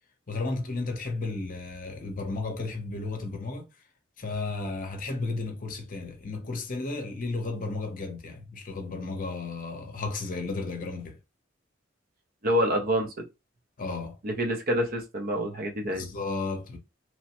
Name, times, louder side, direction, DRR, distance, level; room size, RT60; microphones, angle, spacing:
voice 1, 0.3-3.7 4.2-11.2 13.8-14.2 15.8-16.8, left 3 dB, 45° left, 0.7 m, -33 dB
voice 2, 12.4-13.3 14.2-16.1, equal, 50° right, 0.6 m, -27 dB
3.0 x 2.1 x 2.9 m
head